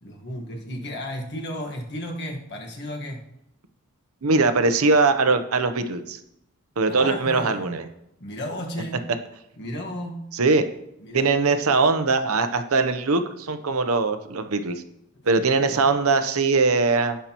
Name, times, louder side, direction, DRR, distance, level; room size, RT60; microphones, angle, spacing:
voice 1, 0.0-3.2 6.9-7.8 8.2-9.1 9.6-10.3 11.0-11.3 15.6-15.8, left 1 dB, 50° left, 1 dB, 1.5 m, -34 dB
voice 2, 4.2-6.2 6.8-7.8 10.3-10.6 11.1-14.8 15.3-17.2, right 3 dB, 80° right, 9 dB, 0.8 m, -21 dB
17.0 x 5.7 x 3.0 m, 0.82 s
head